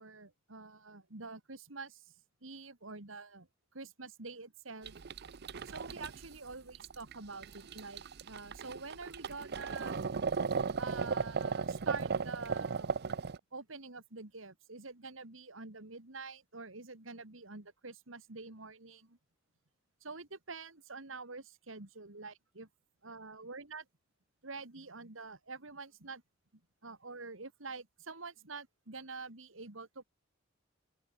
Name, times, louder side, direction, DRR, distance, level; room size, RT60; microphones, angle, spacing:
voice 1, 0.0-2.1 2.4-3.5 3.7-5.0 5.6-10.1 10.8-12.9 13.5-19.2 20.0-22.7 23.0-23.9 24.4-26.2 26.8-30.0, right 4 dB, 80° right, 2.6 m, -47 dB
sound 1, 4.8-13.4, right 5 dB, 55° right, 0.6 m, -36 dB
open air
head